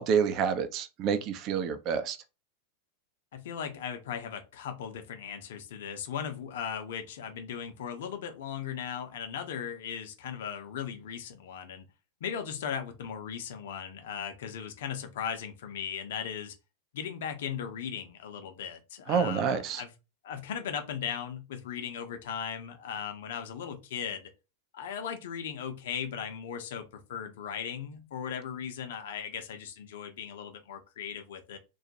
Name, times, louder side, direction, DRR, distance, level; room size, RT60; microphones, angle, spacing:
voice 1, 0.0-2.2 19.1-19.8, right 7 dB, 35° right, 0.4 m, -28 dB
voice 2, 3.3-11.9 12.2-16.6 16.9-19.9 20.2-24.3 24.7-31.6, left 8 dB, 55° left, 0.5 m, -37 dB
2.2 x 2.0 x 2.8 m
figure-of-eight pair, 90°, 0 cm